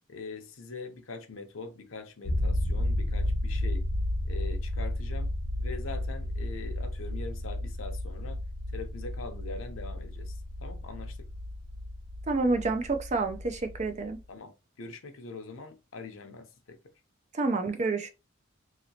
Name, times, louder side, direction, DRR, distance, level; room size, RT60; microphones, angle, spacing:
voice 1, 0.1-3.8 4.3-5.3 5.6-8.4 8.7-11.3 14.3-16.8, left 3 dB, 90° left, 0.7 m, -43 dB
sound 1, 2.3-14.2, left 1 dB, 30° left, 1.1 m, -33 dB
voice 2, 12.3-14.2 17.3-18.1, right 3 dB, 35° right, 0.5 m, -28 dB
3.0 x 2.8 x 2.8 m
head